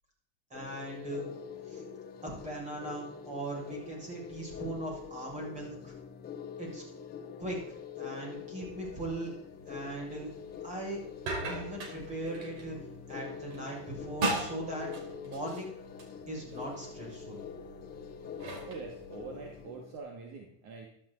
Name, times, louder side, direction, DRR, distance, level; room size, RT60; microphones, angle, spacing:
sound 1, 0.5-20.0, left 7 dB, 25° left, 2.2 m, -45 dB
voice 1, 0.5-1.2 1.7-1.8 2.2-5.9 6.6-6.8 7.4-9.3 9.7-10.3 10.6-11.0 11.5-12.8 13.1-14.9 15.2-15.7 16.3-17.4, right 1 dB, 20° right, -2 dB, 7.2 m, -39 dB
sound 2, 9.5-19.6, right 2 dB, 70° right, 5.5 m, -41 dB
voice 2, 18.6-20.9, right 4 dB, 45° right, 1 dB, 2.7 m, -44 dB
14.0 x 13.0 x 4.3 m, 0.73 s
supercardioid pair, 140°, 35 cm